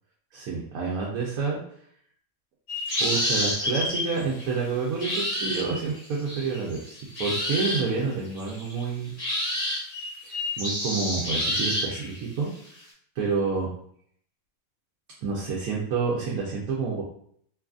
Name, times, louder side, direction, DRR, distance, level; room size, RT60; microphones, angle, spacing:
voice 1, 0.3-1.6 3.0-9.1 10.2-12.8 13.1-13.7 15.2-17.0, right 4 dB, 85° right, -4 dB, 1.1 m, -29 dB
sound 1, 2.7-4.4 5.0-7.9 8.4-8.8 9.2-12.2, left 1 dB, 65° left, 1.4 m, -28 dB
3.1 x 2.3 x 2.4 m, 0.64 s
omnidirectional pair, 1.5 m